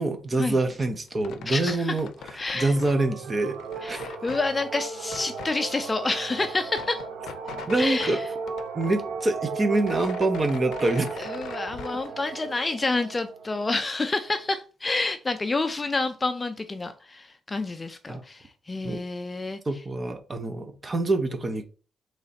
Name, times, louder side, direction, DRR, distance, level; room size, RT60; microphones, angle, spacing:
voice 1, 0.0-2.1 2.5-4.0 7.7-8.2 8.7-11.2 18.1-18.2 18.8-19.0 19.7-21.6, right 2 dB, 25° right, 0.6 m, -26 dB
sound 1, 1.1-3.0 3.3-4.4 5.0-5.5 6.0-6.1 6.3-8.2 8.5-9.4 9.6-12.1, left 7 dB, 90° left, 0.4 m, -42 dB
voice 2, 1.5-1.9 2.3-2.7 3.8-7.0 7.8-8.2 11.2-19.6, left 3 dB, 20° left, 0.3 m, -29 dB
sound 2, 2.5-14.4, right 4 dB, 75° right, 0.6 m, -36 dB
4.0 x 3.2 x 4.1 m
cardioid pair, 150°, 0 cm